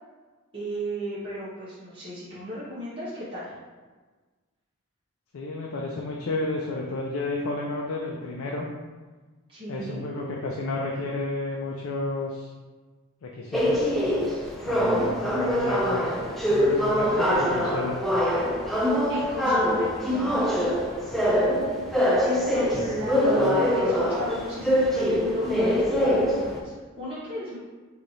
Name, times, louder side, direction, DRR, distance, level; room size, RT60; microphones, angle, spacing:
voice 1, 0.5-3.5 9.5-10.0 19.1-20.5 22.5-23.4 23.8-27.6, equal, 25° right, -12 dB, 1.0 m, -35 dB
voice 2, 5.3-8.7 9.7-12.5 13.2-14.0 14.6-16.0 16.5-18.0 23.3-23.6, left 2 dB, 65° left, -1 dB, 0.4 m, -31 dB
sound 1, 13.5-26.6, equal, ahead, 0.4 m, -24 dB
3.3 x 2.8 x 3.8 m, 1.3 s
head